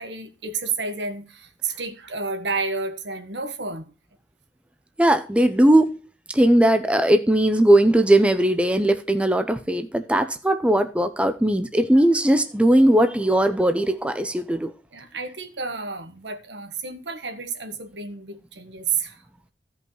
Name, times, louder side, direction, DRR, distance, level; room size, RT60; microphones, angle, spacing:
voice 1, 0.0-3.9 11.9-12.0 14.9-19.2, right 4 dB, 75° right, 1.4 m, -31 dB
voice 2, 5.0-6.0 6.3-14.7, right 1 dB, 5° right, 0.6 m, -19 dB
15.5 x 5.4 x 3.2 m
head